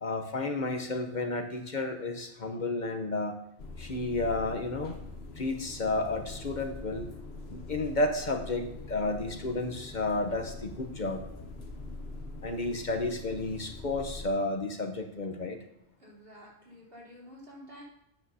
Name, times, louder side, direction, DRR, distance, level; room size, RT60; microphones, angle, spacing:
voice 1, 0.0-3.4 3.8-4.9 5.4-7.1 7.5-11.2 12.4-15.6, left 2 dB, 50° left, 5 dB, 1.0 m, -32 dB
sound 1, 3.6-14.3, left 2 dB, 75° left, 1.2 m, -43 dB
voice 2, 16.0-17.8, equal, 65° right, -5 dB, 3.5 m, -50 dB
12.5 x 8.6 x 2.7 m, 0.81 s
omnidirectional pair, 1.1 m